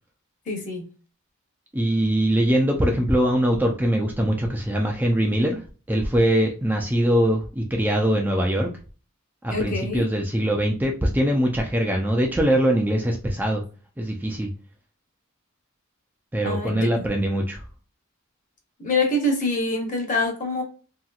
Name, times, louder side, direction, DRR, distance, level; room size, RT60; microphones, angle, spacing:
voice 1, 0.5-0.8 9.5-10.1 16.4-17.0 18.8-20.6, left 2 dB, 40° left, 0.9 m, -25 dB
voice 2, 1.7-5.6 5.9-8.7 9.4-13.6 14.0-14.5 16.3-17.6, right 1 dB, 10° right, 0.4 m, -22 dB
2.9 x 2.8 x 2.3 m
head